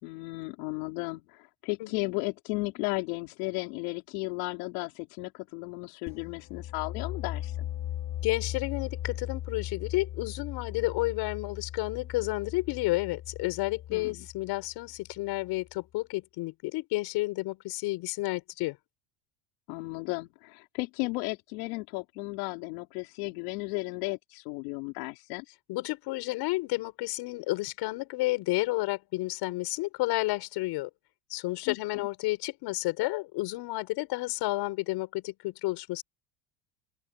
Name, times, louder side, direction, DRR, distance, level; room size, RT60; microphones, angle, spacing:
voice 1, 0.0-7.7 13.9-14.3 19.7-25.4 31.7-32.1, left 25 dB, 80° left, 4.6 m, -35 dB
voice 2, 1.8-2.2 8.2-18.8 25.7-30.9 31.3-36.0, left 20 dB, 65° left, 6.6 m, -31 dB
sound 1, 6.1-15.7, left 12 dB, 45° left, 4.9 m, -39 dB
open air
supercardioid pair, 125°, 44 cm